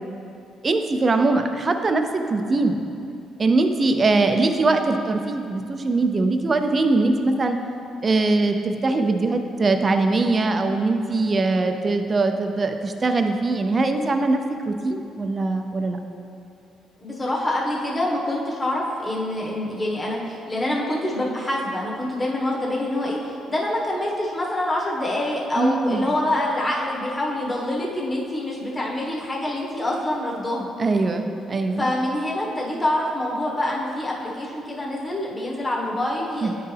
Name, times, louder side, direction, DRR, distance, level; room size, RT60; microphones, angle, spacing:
voice 1, 0.6-2.8 3.4-7.6 8.0-16.0 25.6-26.0 30.8-31.9 36.4-36.5, right 3 dB, 35° right, 6 dB, 0.5 m, -22 dB
voice 2, 17.0-30.7 31.8-36.5, left 1 dB, 25° left, -3 dB, 1.4 m, -26 dB
9.5 x 4.5 x 3.4 m, 2.6 s
cardioid pair, 90°, 0 cm